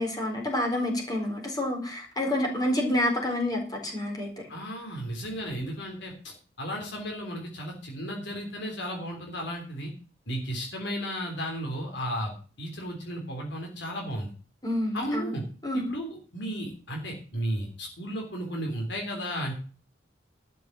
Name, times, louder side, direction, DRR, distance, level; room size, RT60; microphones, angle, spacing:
voice 1, 0.0-4.3 14.6-15.4 15.6-15.8, left 1 dB, 20° left, 1 dB, 4.3 m, -28 dB
voice 2, 4.5-9.9 10.3-14.3 14.9-15.4 15.7-16.1 16.3-19.5, equal, 65° left, 1 dB, 3.5 m, -34 dB
12.0 x 6.8 x 7.3 m, 0.39 s
head